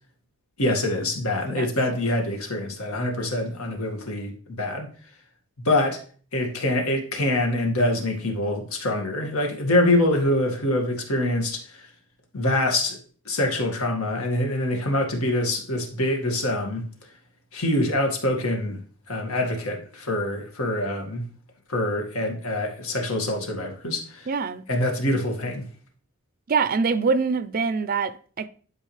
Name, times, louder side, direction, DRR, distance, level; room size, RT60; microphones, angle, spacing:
voice 1, 0.6-4.9 5.6-6.0 6.3-11.9 12.3-13.0 13.3-16.9 17.5-18.8 19.1-21.3 21.7-24.3 24.7-25.6, left 1 dB, 70° left, 1.9 m, -25 dB
voice 2, 24.3-24.6 26.5-28.5, right 5 dB, 40° right, 0.5 m, -24 dB
11.0 x 4.8 x 3.2 m
head